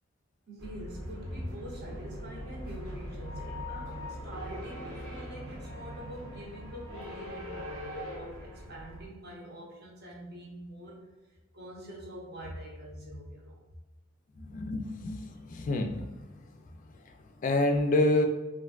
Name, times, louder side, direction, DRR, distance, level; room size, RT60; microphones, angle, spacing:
voice 1, 0.5-11.0 11.3-13.6 15.3-15.4, equal, 50° right, -2 dB, 0.8 m, -45 dB
sound 1, 0.6-9.1, equal, 70° right, 1.0 m, -41 dB
voice 2, 14.4-16.1 17.4-18.3, left 2 dB, 40° left, 5 dB, 0.3 m, -27 dB
3.3 x 2.5 x 2.3 m, 1.2 s
head